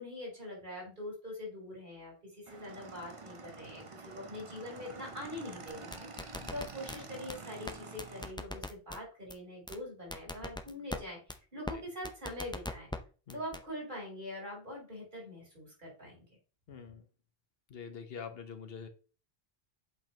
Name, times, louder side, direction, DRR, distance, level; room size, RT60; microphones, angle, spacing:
voice 1, 0.0-12.9 13.3-16.2, left 1 dB, 50° right, 3.3 m, -43 dB
Motorcycle / Engine, 2.5-8.3, right 4 dB, 35° right, 0.7 m, -48 dB
sound 1, 5.7-7.0 7.3-7.4 7.7-7.8 8.0-9.0 9.3-9.4 9.7-9.8 10.1-11.0 11.3-11.4 11.7-11.8 12.0-13.0 13.3-13.6, left 1 dB, 10° left, 0.3 m, -39 dB
voice 2, 16.7-17.1 17.7-18.9, left 6 dB, 70° left, 1.1 m, -45 dB
8.0 x 5.2 x 2.9 m
omnidirectional pair, 1.0 m